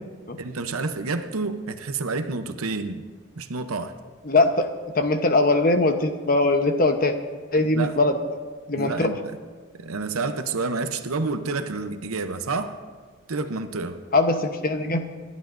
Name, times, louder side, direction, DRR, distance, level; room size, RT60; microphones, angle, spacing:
voice 1, 0.4-3.0 3.4-3.9 7.7-8.0 8.8-9.4 9.8-12.8 13.3-14.0, right 3 dB, 90° right, 8 dB, 0.8 m, -29 dB
voice 2, 4.3-4.7 4.9-7.2 7.5-8.1 8.7-9.1 14.1-15.0, left 2 dB, 45° left, 7 dB, 0.9 m, -21 dB
27.5 x 11.5 x 2.6 m, 1.5 s
head